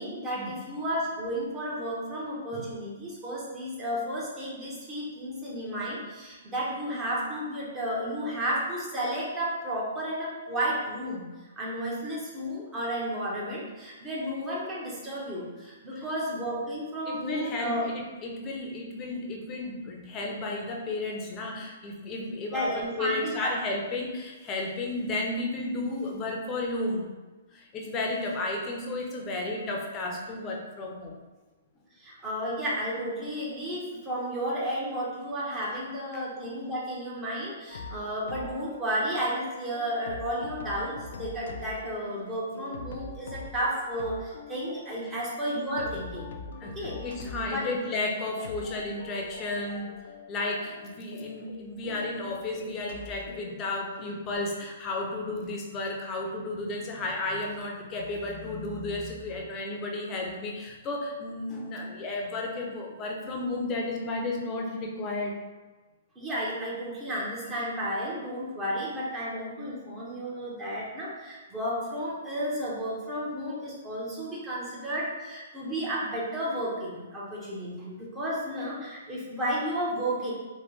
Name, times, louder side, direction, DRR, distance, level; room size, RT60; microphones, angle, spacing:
voice 1, 0.0-11.2 11.6-17.8 22.5-23.5 32.0-46.3 46.7-47.0 47.4-47.7 66.2-80.3, equal, 20° right, -6 dB, 0.9 m, -32 dB
voice 2, 17.1-17.9 18.2-27.1 27.5-31.1 36.1-36.2 45.0-45.1 45.8-45.9 46.6-49.9 50.3-65.3, left 2 dB, 25° left, -1 dB, 0.6 m, -33 dB
sound 1, 37.7-54.4, left 4 dB, 75° left, 0.3 m, -44 dB
3.2 x 2.2 x 3.1 m, 1.2 s
hypercardioid pair, 135°, 0 cm